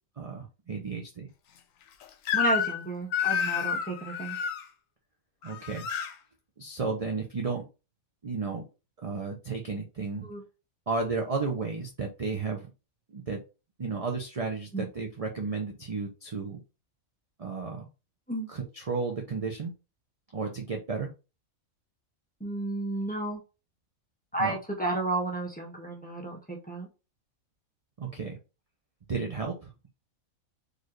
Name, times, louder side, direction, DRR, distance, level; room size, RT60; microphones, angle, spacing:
voice 1, 0.2-1.3 5.4-5.9 6.6-7.6 8.2-8.6 9.0-10.3 10.9-12.7 13.1-13.4 13.8-16.6 17.4-17.9 18.5-19.7 20.3-21.1 24.4-24.6 28.0-28.4 29.1-29.7, right 4 dB, 35° right, 1 dB, 0.6 m, -33 dB
Crying sobbing / Screech, 2.3-2.8 3.1-4.6 5.4-6.1, left 6 dB, 70° left, 1.0 m, -29 dB
voice 2, 2.3-4.4 10.2-10.4 14.7-14.9 18.3-18.5 22.4-23.4 24.3-26.9, right 2 dB, 5° left, -2 dB, 1.1 m, -32 dB
4.4 x 3.3 x 3.1 m, 0.30 s
omnidirectional pair, 1.4 m